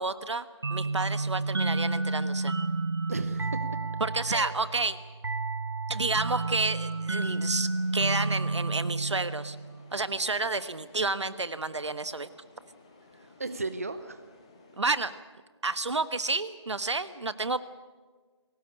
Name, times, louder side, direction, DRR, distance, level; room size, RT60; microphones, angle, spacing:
voice 1, 0.0-2.5 4.0-5.0 5.9-9.6 9.9-12.3 14.8-15.2 15.6-17.6, right 3 dB, 70° right, 13 dB, 1.3 m, -30 dB
sound 1, 0.6-10.0, right 3 dB, 55° right, 0.8 m, -31 dB
voice 2, 3.1-3.6 4.3-4.5 13.4-14.2 16.9-17.0, right 3 dB, 30° right, 10 dB, 0.8 m, -35 dB
sound 2, 6.1-15.1, left 3 dB, 15° left, 1.4 m, -57 dB
21.5 x 18.0 x 8.5 m, 1.4 s
figure-of-eight pair, 175°, 15 cm